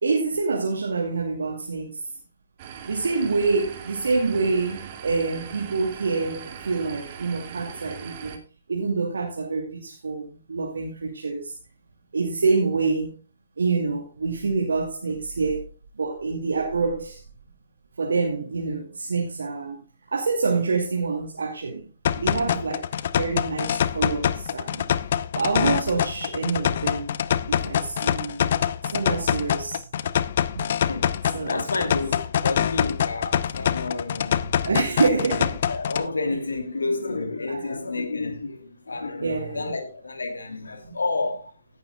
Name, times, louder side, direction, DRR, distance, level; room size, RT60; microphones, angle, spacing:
voice 1, 0.0-2.0 2.8-8.4 8.7-11.5 12.1-13.2 13.6-15.7 16.0-17.2 18.0-22.9 23.1-24.8 25.3-27.2 27.5-28.6 28.9-29.8 30.5-30.7 31.3-31.9 34.6-35.6 37.5-37.7 39.2-39.7 40.8-40.9, right 4 dB, 70° right, 2.6 m, -26 dB
sound 1, 2.6-8.4, right 8 dB, 40° right, 2.6 m, -40 dB
sound 2, 22.0-36.1, left 9 dB, 50° left, 0.8 m, -25 dB
voice 2, 30.9-34.6 35.0-35.1 35.6-41.5, left 3 dB, 75° left, 2.7 m, -30 dB
17.0 x 11.5 x 2.3 m
figure-of-eight pair, 125°, 0 cm